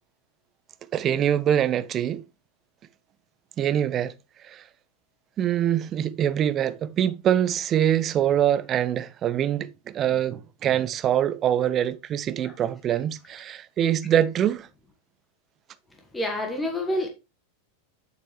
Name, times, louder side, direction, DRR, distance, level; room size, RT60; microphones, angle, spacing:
voice 1, 0.9-2.2 3.6-4.1 4.4-4.6 5.4-14.7, right 10 dB, 30° right, 0.5 m, -24 dB
voice 2, 16.1-17.1, left 1 dB, 10° left, 1.4 m, -27 dB
7.8 x 6.7 x 3.2 m
figure-of-eight pair, 90°, 0 cm